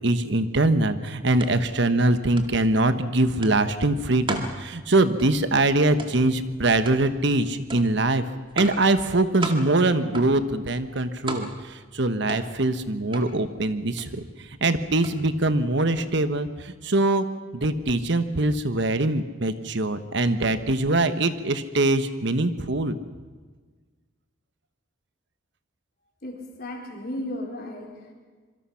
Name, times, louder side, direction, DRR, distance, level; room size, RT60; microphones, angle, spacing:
voice 1, 0.0-8.2 8.6-14.2 14.6-17.2 17.5-23.0, right 2 dB, 60° right, 11 dB, 1.2 m, -23 dB
sound 1, 1.3-16.4, right 2 dB, 25° right, 2.2 m, -39 dB
voice 2, 26.2-28.1, left 1 dB, 50° left, 1 dB, 4.2 m, -35 dB
26.0 x 24.0 x 5.8 m, 1.4 s
head